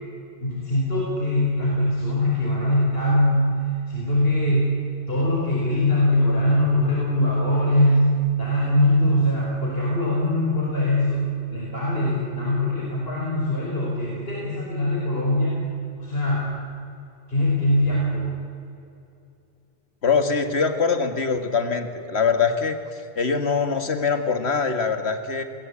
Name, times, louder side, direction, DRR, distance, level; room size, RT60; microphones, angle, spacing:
voice 1, 0.4-4.8 5.1-8.1 8.4-15.6 16.0-16.5 17.3-18.4, left 1 dB, 70° left, -3 dB, 5.1 m, -22 dB
voice 2, 20.0-25.4, left 5 dB, 90° left, 7 dB, 2.0 m, -23 dB
28.5 x 20.0 x 8.6 m, 2.7 s
omnidirectional pair, 1.1 m